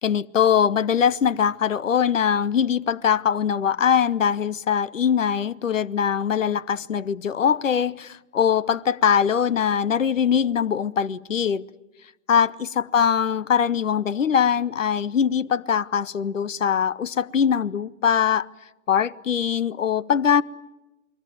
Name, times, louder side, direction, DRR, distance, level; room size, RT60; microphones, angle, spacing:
voice 1, 0.0-11.7 12.3-18.5 18.9-20.4, left 7 dB, 70° left, 0.9 m, -22 dB
29.0 x 22.0 x 9.3 m
figure-of-eight pair, 130°, 40 cm